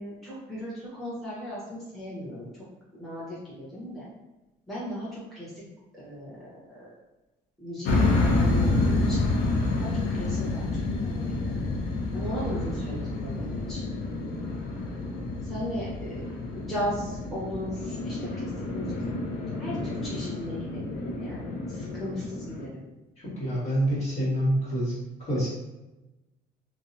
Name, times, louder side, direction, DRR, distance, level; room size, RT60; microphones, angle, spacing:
voice 1, 0.0-2.5 2.9-4.0 4.7-5.5 5.9-6.9 7.6-9.3 9.8-11.5 12.1-13.8 15.4-16.1 16.5-19.1 19.6-22.8, equal, ahead, -9 dB, 0.9 m, -37 dB
sound 1, 7.9-22.7, left 2 dB, 85° left, 0.5 m, -29 dB
voice 2, 23.2-25.0 25.3-25.5, right 1 dB, 40° left, -7 dB, 1.5 m, -26 dB
2.6 x 2.1 x 2.6 m, 1.0 s
cardioid pair, 110°, 17 cm